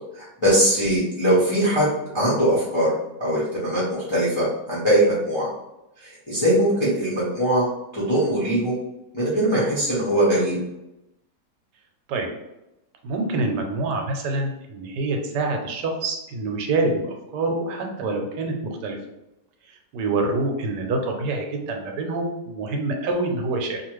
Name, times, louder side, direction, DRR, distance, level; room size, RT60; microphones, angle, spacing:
voice 1, 0.1-1.9 2.1-2.9 3.2-5.5 6.0-8.7 9.1-10.6, right 1 dB, 25° left, -9 dB, 0.6 m, -21 dB
voice 2, 13.0-18.6 18.8-19.0 19.9-23.8, right 2 dB, 85° right, 2 dB, 1.2 m, -26 dB
2.8 x 2.4 x 3.0 m, 0.91 s
omnidirectional pair, 1.8 m